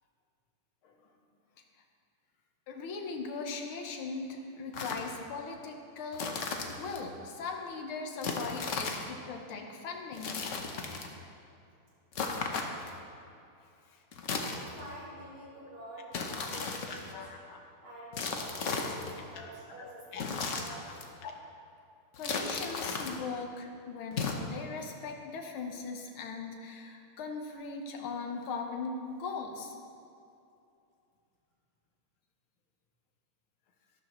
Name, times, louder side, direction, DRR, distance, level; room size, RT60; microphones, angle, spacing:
voice 1, 2.7-10.4 13.9-14.0 16.9-17.6 19.3-19.5 19.8-19.9 20.1-20.5 20.8-20.9 21.2-21.3 22.2-29.7, left 4 dB, 80° left, 3 dB, 1.9 m, -39 dB
sound 1, 4.7-5.1 6.1-7.0 8.2-9.1 10.1-11.1 12.1-13.0 14.1-15.0 16.1-17.1 18.1-19.2 20.1-21.1 22.1-23.2 24.1-24.3, left 4 dB, 55° left, 0.9 m, -36 dB
voice 2, 14.5-16.1 16.5-17.2 17.8-21.0, right 1 dB, 75° right, -8 dB, 4.1 m, -48 dB
13.0 x 12.5 x 3.1 m, 2.6 s
omnidirectional pair, 2.3 m